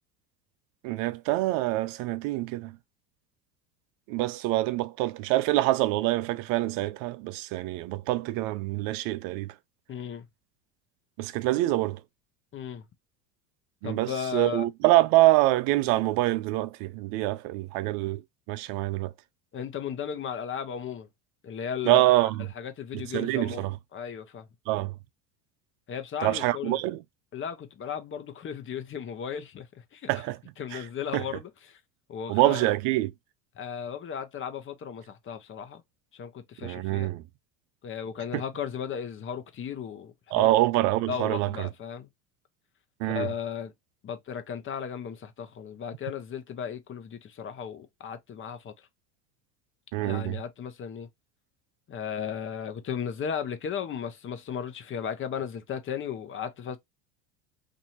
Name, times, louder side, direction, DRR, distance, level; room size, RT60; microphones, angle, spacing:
voice 1, 0.8-2.8 4.1-9.5 11.2-12.0 13.8-18.2 18.5-19.1 21.8-22.5 22.9-23.7 24.7-24.9 26.2-27.0 30.1-30.4 30.7-30.8 31.1-31.2 32.3-33.1 36.6-37.2 38.3-38.4 40.3-41.7 43.0-43.3 49.9-50.4, right 17 dB, 65° right, 0.5 m, -25 dB
voice 2, 9.9-10.2 12.5-12.8 13.8-14.6 19.5-21.1 21.4-22.3 22.6-24.5 25.9-26.8 27.3-29.7 29.9-30.1 30.6-31.8 32.1-32.7 33.6-35.8 36.1-37.1 37.8-40.5 41.1-42.1 43.1-43.7 44.0-48.7 50.0-51.1 51.9-56.8, left 7 dB, 30° left, 0.8 m, -35 dB
2.8 x 2.7 x 4.2 m
supercardioid pair, 95°, 38 cm